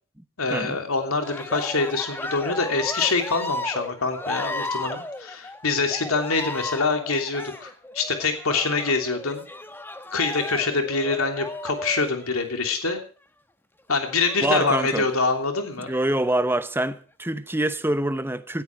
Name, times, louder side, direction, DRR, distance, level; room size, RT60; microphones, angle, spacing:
voice 1, 0.4-9.4 10.1-13.0 13.9-15.9, left 4 dB, 85° left, 3.1 m, -25 dB
Cheering, 1.1-12.8 14.1-14.9 15.7-16.3, left 2 dB, 10° left, 1.2 m, -35 dB
voice 2, 14.4-15.1 15.9-18.6, right 1 dB, 10° right, 0.9 m, -25 dB
17.5 x 13.0 x 4.7 m
head